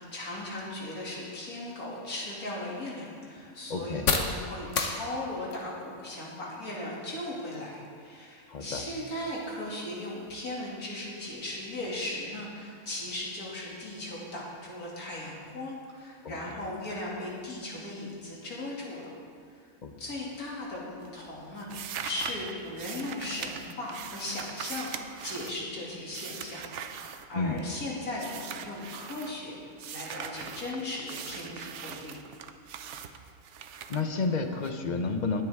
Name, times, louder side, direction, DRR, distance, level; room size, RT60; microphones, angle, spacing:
voice 1, 0.0-19.1 19.5-19.7 20.0-24.9 25.2-29.6 29.9-32.2, left 1 dB, 90° left, -5 dB, 2.9 m, -37 dB
sound 1, 1.9-19.5, left 4 dB, 60° left, 1.2 m, -40 dB
voice 2, 3.7-4.1 8.5-8.8 16.2-16.3 19.8-19.9 27.3-27.6 33.9-35.4, left 4 dB, 40° left, 5 dB, 0.8 m, -30 dB
sound 2, 20.3-20.8 21.0-27.8 28.1-29.3 29.8-34.7, right 8 dB, 65° right, 0.9 m, -42 dB
22.0 x 7.9 x 3.6 m, 2.2 s
omnidirectional pair, 1.5 m